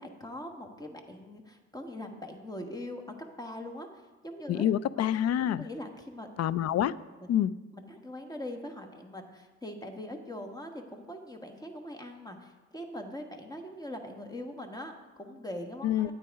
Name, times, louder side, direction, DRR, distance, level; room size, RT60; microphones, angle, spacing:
voice 1, 0.0-3.0 3.4-3.9 4.2-4.7 5.0-5.1 5.6-6.3 7.2-7.3 7.7-16.1, left 1 dB, 15° left, 4 dB, 1.3 m, -42 dB
voice 2, 4.5-5.7 6.4-6.9 7.3-7.5 15.8-16.1, left 11 dB, 60° left, 17 dB, 0.4 m, -27 dB
9.2 x 9.0 x 4.7 m, 1.2 s
cardioid pair, 90°, 30 cm